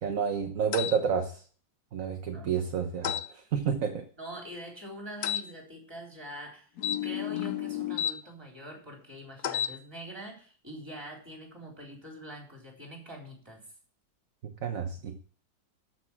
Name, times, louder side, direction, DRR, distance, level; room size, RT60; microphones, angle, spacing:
voice 1, 0.0-1.4 1.9-4.0 14.4-15.2, right 7 dB, 50° right, 6 dB, 1.3 m, -30 dB
sound 1, 0.7-1.0 3.0-3.3 5.2-5.5 6.8-8.2 9.4-9.8, left 10 dB, 65° left, 1.1 m, -31 dB
voice 2, 4.2-6.7 7.0-13.6, equal, 15° right, 0 dB, 3.7 m, -44 dB
13.0 x 6.1 x 7.3 m, 0.44 s
omnidirectional pair, 1.9 m